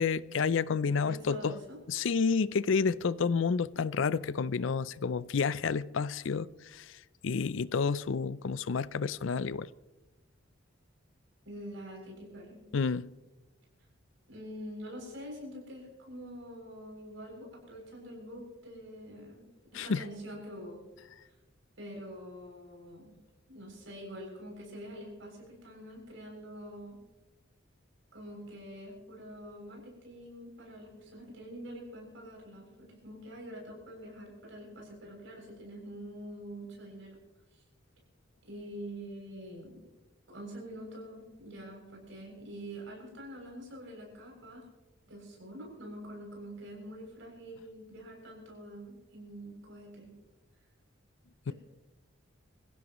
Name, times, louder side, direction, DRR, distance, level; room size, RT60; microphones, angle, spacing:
voice 1, 0.0-1.6 1.9-9.7 12.7-13.1 19.7-20.1 51.5-51.6, left 5 dB, 70° left, 0.5 m, -30 dB
voice 2, 0.9-1.8 11.4-12.6 14.3-19.5 19.7-20.8 21.8-23.1 23.5-27.0 28.1-37.2 37.5-37.6 38.5-39.8 40.3-44.7 45.1-50.1 51.5-51.6, equal, 70° right, 7.1 m, -45 dB
26.0 x 15.5 x 3.1 m
head